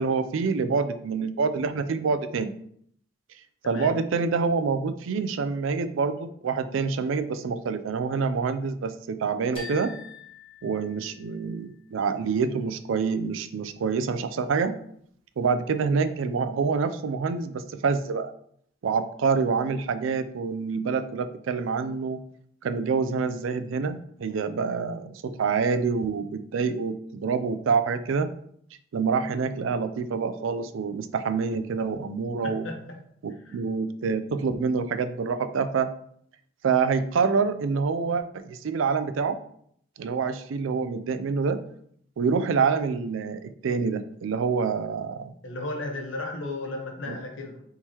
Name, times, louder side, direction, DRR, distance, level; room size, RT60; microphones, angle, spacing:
voice 1, 0.0-2.5 3.7-9.9 10.6-14.7 15.4-18.3 18.8-22.2 22.6-28.3 28.9-32.7 33.2-35.9 36.6-39.4 40.0-41.6 42.2-45.3 47.1-47.2, right 5 dB, 75° right, 11 dB, 0.4 m, -26 dB
sound 1, 9.6-11.5, left 3 dB, 25° left, 0.9 m, -43 dB
voice 2, 32.4-32.8 33.4-33.6 45.4-47.6, left 2 dB, 70° left, 2 dB, 1.0 m, -34 dB
4.5 x 3.7 x 2.8 m, 0.66 s
head